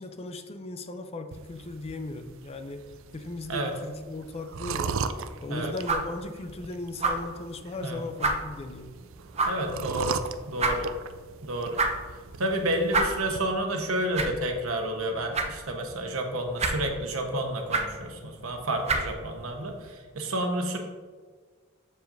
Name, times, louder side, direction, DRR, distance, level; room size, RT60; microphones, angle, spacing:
voice 1, 0.0-2.8 3.1-5.0 5.4-9.0, left 2 dB, 30° left, 8 dB, 0.4 m, -37 dB
sound 1, 1.3-13.4, right 5 dB, 65° right, 0.4 m, -38 dB
sound 2, 5.1-19.9, right 3 dB, 30° right, 0.7 m, -33 dB
voice 2, 9.5-10.2 10.5-10.9 11.4-11.8 12.4-20.8, right 1 dB, 80° right, 3 dB, 1.0 m, -30 dB
7.3 x 7.0 x 2.6 m, 1.5 s
head